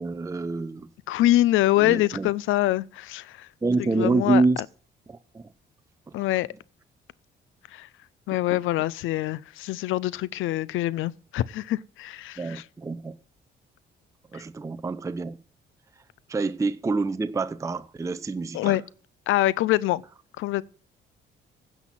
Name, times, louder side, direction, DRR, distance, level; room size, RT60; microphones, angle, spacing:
voice 1, 0.0-0.9 1.8-2.3 3.6-4.6 5.1-5.4 6.1-6.2 8.5-8.6 12.4-13.1 14.3-15.4 16.3-18.8, right 3 dB, 15° right, 0.5 m, -27 dB
voice 2, 1.1-3.5 3.8-4.4 6.1-6.5 7.7-7.9 8.3-12.6 18.5-18.8 19.3-20.0 20.4-20.6, left 15 dB, 85° left, 0.5 m, -24 dB
10.0 x 6.0 x 7.3 m
cardioid pair, 90°, 20 cm